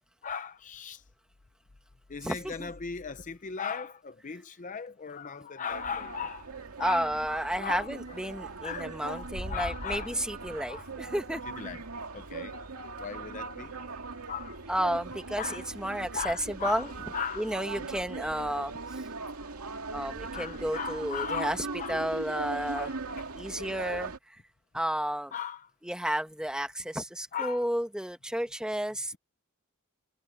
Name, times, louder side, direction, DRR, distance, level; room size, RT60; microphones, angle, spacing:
voice 1, 0.2-1.0 2.1-6.5 6.8-7.1 7.6-8.2 8.6-10.2 10.7-10.9 11.6-11.8 12.1-12.5 13.0-13.7 14.3-14.6 15.4-15.7 16.1-17.9 20.3-22.0 22.7-23.2 25.3-25.7 27.3-27.7, left 6 dB, 35° left, 0.6 m, -38 dB
voice 2, 2.2-2.7 6.8-11.4 14.7-16.9 17.4-19.0 19.9-21.6 21.9-22.9 23.3-24.4 24.7-25.3 25.8-29.2, right 1 dB, 5° right, 1.3 m, -32 dB
sound 1, 5.7-24.2, right 3 dB, 85° right, 2.3 m, -39 dB
head